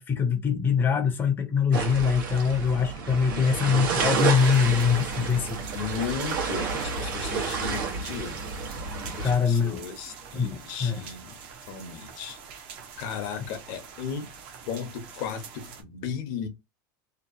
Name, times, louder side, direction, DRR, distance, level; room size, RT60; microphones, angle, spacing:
voice 1, 0.0-5.6 9.2-9.8 10.2-11.0 13.4-13.5, left 6 dB, 20° left, 0.6 m, -24 dB
sound 1, 1.7-9.4, right 5 dB, 80° right, 1.0 m, -30 dB
voice 2, 3.3-3.9 5.7-8.4 8.9-11.3 11.7-12.4 13.0-14.3 14.7-16.5, left 7 dB, 60° left, 0.8 m, -35 dB
sound 2, 4.1-15.8, right 6 dB, 55° right, 0.8 m, -45 dB
2.8 x 2.1 x 2.5 m
supercardioid pair, 130°, 11 cm